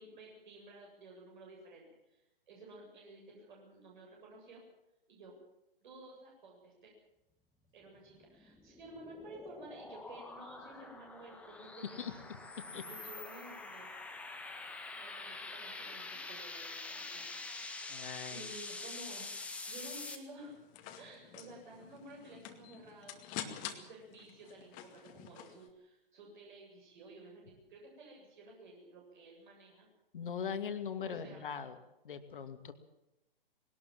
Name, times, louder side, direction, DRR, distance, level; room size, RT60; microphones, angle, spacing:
voice 1, 0.0-4.6 5.1-5.3 5.8-6.9 7.7-12.2 12.6-13.9 14.9-19.4 19.6-20.6 21.0-29.9 31.0-31.4, right 2 dB, 55° right, -1 dB, 8.0 m, -53 dB
sound 1, 8.1-20.2, left 3 dB, 5° left, 1.7 m, -46 dB
voice 2, 17.9-18.4 30.1-31.8 32.0-32.7, left 7 dB, 60° left, 8 dB, 2.4 m, -40 dB
sound 2, 20.4-25.7, left 10 dB, 25° left, 2.2 m, -48 dB
20.5 x 19.0 x 7.5 m, 0.91 s
figure-of-eight pair, 125°, 30 cm